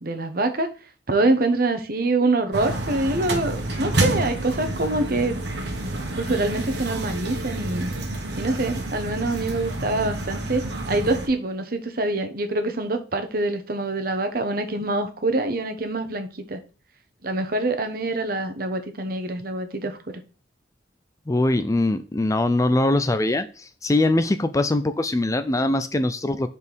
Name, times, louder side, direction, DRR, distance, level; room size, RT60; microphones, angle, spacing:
voice 1, 0.0-0.7 1.1-5.4 6.2-7.9 8.4-16.6 17.2-20.0, right 2 dB, 55° right, 7 dB, 1.0 m, -25 dB
sound 1, 2.5-11.3, right 2 dB, 70° right, 1.5 m, -29 dB
voice 2, 21.3-26.5, left 2 dB, 20° left, 10 dB, 0.4 m, -22 dB
5.4 x 4.3 x 6.2 m, 0.36 s
head